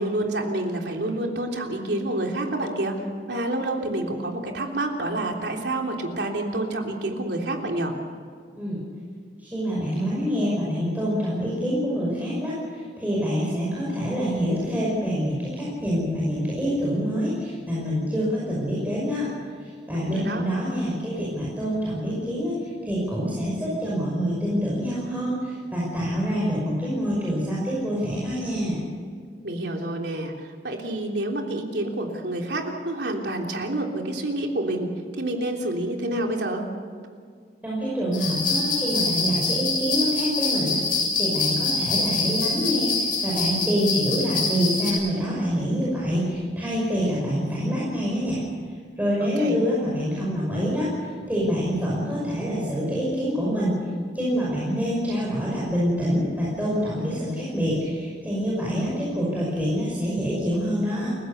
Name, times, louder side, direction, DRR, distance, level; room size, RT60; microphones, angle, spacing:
voice 1, 0.0-2.9 3.3-7.9 19.9-20.4 29.4-30.3 30.6-34.9 35.2-36.6 49.4-49.5, right 1 dB, 70° right, 1 dB, 3.4 m, -28 dB
voice 2, 9.4-19.3 19.6-28.8 37.6-40.8 41.2-48.4 49.0-53.8 54.1-61.1, equal, 10° right, -6 dB, 5.7 m, -26 dB
sound 1, 38.1-44.9, left 3 dB, 50° left, 7.6 m, -25 dB
29.5 x 16.0 x 6.8 m, 2.1 s
head